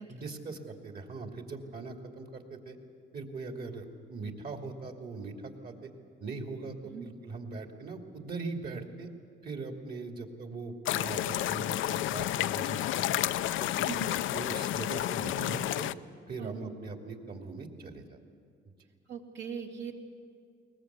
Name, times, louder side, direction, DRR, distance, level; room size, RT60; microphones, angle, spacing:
voice 1, 0.1-2.8 3.1-5.9 6.2-9.1 9.4-13.2 13.6-15.9 16.3-18.2 18.6-18.7, right 3 dB, 50° right, 3 dB, 2.8 m, -41 dB
sound 1, 10.8-15.9, left 13 dB, 80° left, 0.5 m, -31 dB
voice 2, 13.9-14.2 16.4-16.7 19.1-19.9, right 7 dB, 70° right, 0 dB, 2.9 m, -40 dB
22.0 x 19.5 x 8.3 m, 2.2 s
cardioid pair, 90°, 20 cm